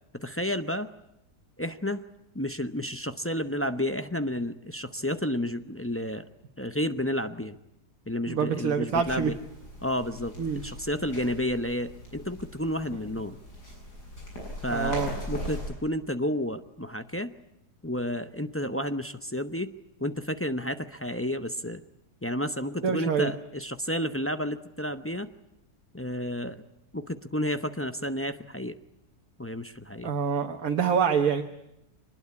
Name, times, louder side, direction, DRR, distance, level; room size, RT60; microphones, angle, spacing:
voice 1, 0.1-0.9 1.6-2.0 2.3-6.2 6.6-7.6 8.1-9.4 9.8-13.4 14.6-15.0 15.3-17.3 17.8-19.7 20.0-21.8 22.2-25.3 25.9-26.6 26.9-28.8 29.4-30.1, left 1 dB, 15° left, 8 dB, 0.5 m, -31 dB
voice 2, 8.3-9.3 10.4-10.6 14.7-15.1 22.8-23.3 30.0-31.4, right 6 dB, 60° right, 3 dB, 1.7 m, -26 dB
sound 1, 8.9-15.7, equal, 85° left, 8.4 m, -40 dB
24.5 x 20.5 x 9.6 m, 0.86 s
omnidirectional pair, 1.7 m